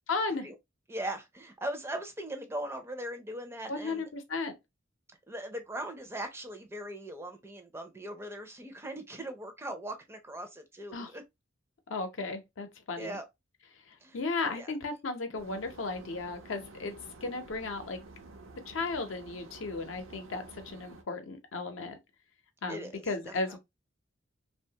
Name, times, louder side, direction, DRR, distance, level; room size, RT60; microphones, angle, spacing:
voice 1, 0.1-0.5 3.7-4.5 10.9-11.1 11.9-13.2 13.9-16.9 17.2-18.0 18.7-22.0 22.6-23.6, left 3 dB, 75° left, 0.6 m, -35 dB
voice 2, 0.9-4.1 5.3-11.2 13.0-13.2 14.0-14.2 14.5-14.7 22.7-23.6, right 1 dB, 15° right, 0.4 m, -40 dB
sound 1, 15.3-21.0, right 2 dB, 85° right, 0.6 m, -50 dB
2.8 x 2.2 x 2.7 m
head